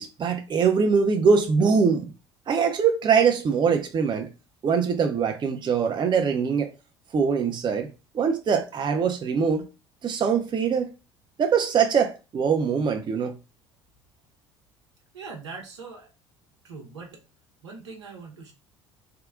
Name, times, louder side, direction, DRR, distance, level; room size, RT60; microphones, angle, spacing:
voice 1, 0.0-2.1 2.5-4.3 4.6-6.7 7.1-7.9 8.1-9.7 10.0-10.9 11.4-13.3, right 6 dB, 30° right, 0.7 m, -22 dB
voice 2, 15.1-16.1 16.6-17.2 17.6-18.5, right 4 dB, 80° right, 1.1 m, -41 dB
3.8 x 2.2 x 3.6 m
figure-of-eight pair, 60°, 14 cm